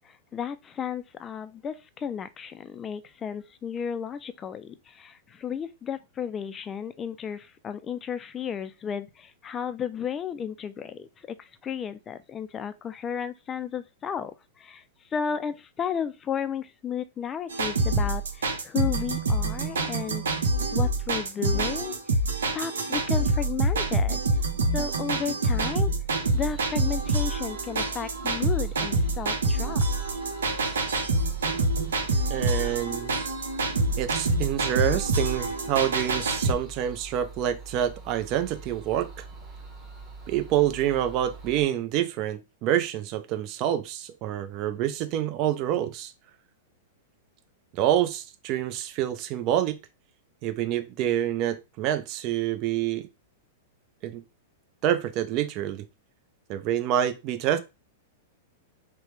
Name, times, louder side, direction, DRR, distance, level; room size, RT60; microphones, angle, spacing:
voice 1, 0.0-14.8 15.1-20.2 20.7-22.2 22.5-24.4 24.7-25.9 26.3-29.8, left 7 dB, 25° left, 0.3 m, -33 dB
sound 1, 17.5-36.5, right 2 dB, 85° right, 0.6 m, -26 dB
sound 2, 26.2-41.6, right 3 dB, 15° right, 1.1 m, -44 dB
voice 2, 32.3-33.2 34.0-39.2 40.3-46.1 47.7-49.8 50.4-53.1 54.0-54.2 54.8-55.8 56.5-57.6, right 11 dB, 45° right, 0.4 m, -27 dB
3.0 x 2.1 x 3.2 m
hypercardioid pair, 115°, 0 cm